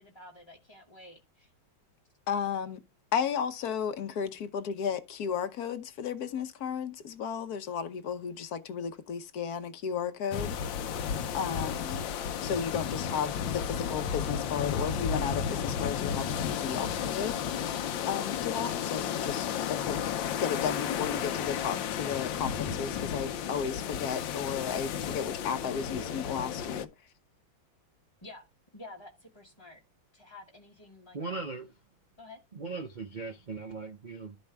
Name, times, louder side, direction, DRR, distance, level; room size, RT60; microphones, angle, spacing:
voice 1, 0.0-1.5 28.2-28.5 28.7-29.8 30.1-31.4 32.2-32.4, left 2 dB, 20° left, 0.9 m, -50 dB
voice 2, 2.3-2.8 3.1-10.8 11.3-12.1 12.4-19.5 19.8-26.9, left 7 dB, 60° left, 1.2 m, -34 dB
sound 1, 10.3-26.8, left 8 dB, 80° left, 1.5 m, -33 dB
voice 3, 31.1-31.8 32.5-34.4, right 3 dB, 60° right, 0.4 m, -38 dB
12.0 x 5.3 x 3.4 m
omnidirectional pair, 2.1 m